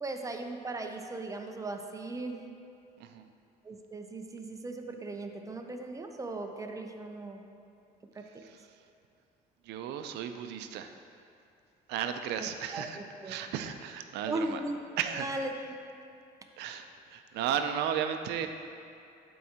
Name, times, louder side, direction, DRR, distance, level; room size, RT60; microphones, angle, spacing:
voice 1, 0.0-2.6 3.6-7.4 8.1-8.4 12.4-13.3 14.3-14.8 15.1-15.5, right 2 dB, 20° right, 4 dB, 0.5 m, -38 dB
voice 2, 8.4-8.8 9.6-11.0 11.9-13.0 13.2-14.6 15.0-15.4 16.6-18.5, right 9 dB, 80° right, 7 dB, 0.5 m, -34 dB
12.0 x 4.6 x 2.8 m, 2.6 s
cardioid pair, 110°, 17 cm